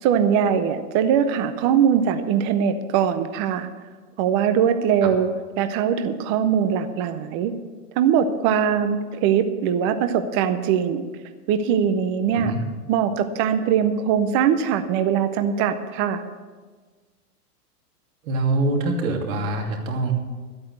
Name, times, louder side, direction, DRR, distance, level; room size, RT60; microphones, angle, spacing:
voice 1, 0.0-3.7 4.2-5.3 5.6-7.5 8.0-11.0 11.5-12.5 12.9-16.2, right 8 dB, 20° right, 9 dB, 0.4 m, -21 dB
voice 2, 18.2-20.1, right 2 dB, 55° right, 1 dB, 2.9 m, -24 dB
12.0 x 8.7 x 7.8 m, 1.4 s
hypercardioid pair, 125°, 48 cm